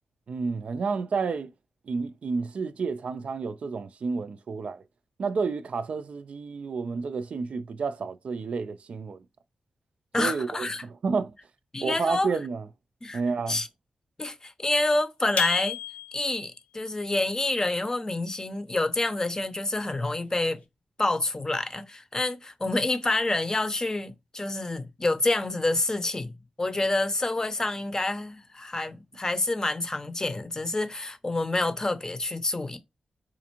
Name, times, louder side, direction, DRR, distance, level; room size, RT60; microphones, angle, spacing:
voice 1, 0.3-1.5 1.9-4.8 5.2-9.2 10.2-11.3 11.8-12.7 13.1-13.6, right 4 dB, 65° right, 0.4 m, -30 dB
voice 2, 10.1-10.8 11.7-12.4 13.0-13.2 13.5-13.7 14.2-15.8 16.1-20.6 21.0-32.8, left 2 dB, 25° left, 0.6 m, -28 dB
sound 1, 15.4-16.5, left 9 dB, 80° left, 0.7 m, -30 dB
4.2 x 2.5 x 2.9 m
cardioid pair, 80°, 2 cm